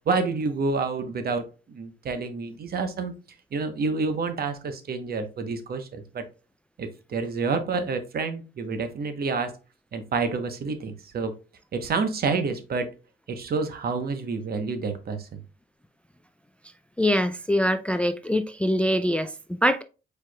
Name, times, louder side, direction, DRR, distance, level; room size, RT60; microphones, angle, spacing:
voice 1, 0.1-3.1 3.5-6.2 6.8-9.5 9.9-11.3 11.7-12.9 13.3-15.4, right 4 dB, 50° right, 0.9 m, -28 dB
voice 2, 17.0-19.8, equal, 5° left, 0.3 m, -24 dB
4.6 x 4.4 x 2.2 m
cardioid pair, 90°, 20 cm